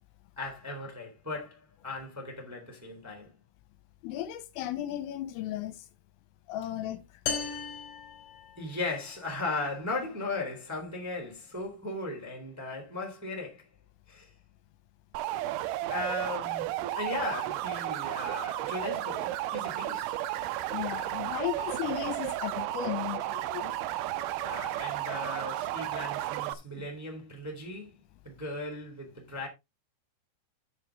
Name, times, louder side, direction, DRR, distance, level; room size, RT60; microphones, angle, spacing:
voice 1, 0.4-3.3 8.6-13.7 14.1-14.3 15.9-20.1 24.4-28.0 28.2-29.5, left 2 dB, 5° right, 2.2 m, -37 dB
voice 2, 4.0-5.8 6.5-7.0 20.7-23.8, left 12 dB, 85° left, 3.5 m, -35 dB
sound 1, 7.3-9.0, left 6 dB, 65° left, 3.6 m, -36 dB
sound 2, 15.1-26.5, right 14 dB, 85° right, 2.8 m, -33 dB
9.4 x 7.7 x 3.6 m
omnidirectional pair, 5.9 m